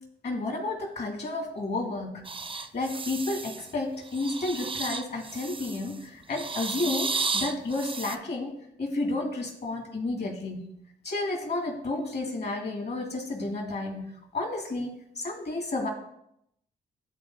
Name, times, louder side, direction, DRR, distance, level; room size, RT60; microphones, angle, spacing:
voice 1, 0.2-2.2 2.6-10.7 11.0-15.9, left 2 dB, 60° left, 0 dB, 2.2 m, -31 dB
sound 1, 2.2-3.7 4.1-5.9 6.3-8.2, right 4 dB, 30° right, 0.5 m, -33 dB
11.0 x 3.8 x 2.7 m, 0.76 s
supercardioid pair, 50°, 19 cm